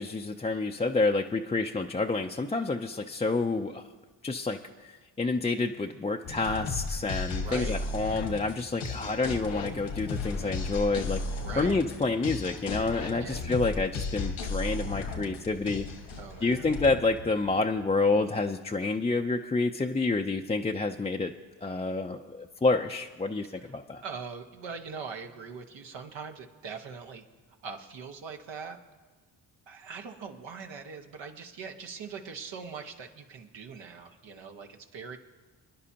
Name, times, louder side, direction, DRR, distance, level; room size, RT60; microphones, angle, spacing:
voice 1, 0.0-3.8 4.2-15.9 16.4-21.3 21.6-24.0, left 3 dB, 15° left, 3 dB, 0.5 m, -28 dB
sound 1, 6.2-17.9, left 3 dB, 85° left, 1.7 m, -35 dB
voice 2, 7.4-7.8 11.4-11.7 13.2-13.4 16.2-16.7 23.6-27.2 27.6-28.8 29.7-35.2, right 5 dB, 75° right, 4 dB, 1.4 m, -42 dB
27.0 x 10.5 x 2.9 m, 1.4 s
cardioid pair, 65°, 44 cm